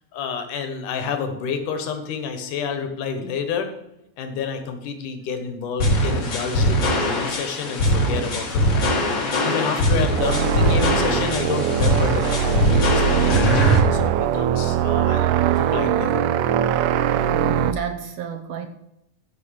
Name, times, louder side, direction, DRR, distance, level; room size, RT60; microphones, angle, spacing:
voice 1, 0.1-3.7 4.2-12.6 12.8-13.5 13.9-16.4, left 6 dB, 80° left, 7 dB, 2.9 m, -29 dB
sound 1, 5.8-13.8, equal, 50° left, 2.9 m, -21 dB
sound 2, 10.2-17.7, right 9 dB, 85° right, 2.2 m, -21 dB
voice 2, 17.1-18.7, right 7 dB, 70° right, 6 dB, 1.8 m, -31 dB
15.0 x 5.7 x 6.4 m, 0.84 s
omnidirectional pair, 3.6 m